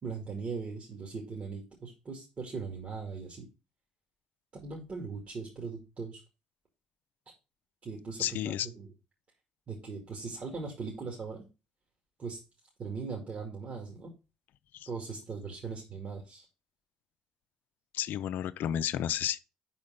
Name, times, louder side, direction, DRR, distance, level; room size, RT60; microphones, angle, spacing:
voice 1, 0.0-3.5 4.5-6.2 7.8-8.9 9.7-11.4 12.2-12.4 12.8-14.1 14.9-16.5, right 4 dB, 45° right, 2.2 m, -39 dB
voice 2, 8.2-8.7 14.7-14.9 17.9-19.4, left 11 dB, 75° left, 0.4 m, -32 dB
5.1 x 4.3 x 5.7 m
supercardioid pair, 65°, 3 cm